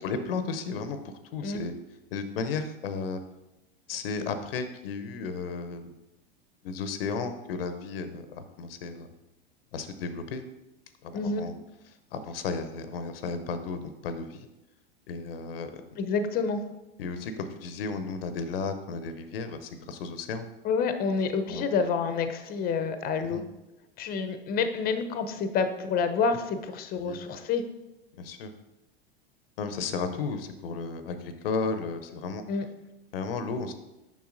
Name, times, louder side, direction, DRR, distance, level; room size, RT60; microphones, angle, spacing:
voice 1, 0.0-1.7 2.1-3.2 3.9-5.8 6.6-9.1 9.7-10.4 11.0-11.5 11.8-14.5 15.1-15.7 17.0-20.5 21.5-21.8 23.3-23.4 27.0-27.2 28.2-28.5 29.6-32.4 33.1-33.7, left 4 dB, 75° left, 9 dB, 0.7 m, -34 dB
voice 2, 11.1-11.4 16.0-16.6 20.6-23.4 24.0-27.6 32.5-32.6, left 5 dB, 30° left, 9 dB, 0.6 m, -28 dB
7.2 x 5.6 x 2.5 m, 0.95 s
hypercardioid pair, 95°, 30 cm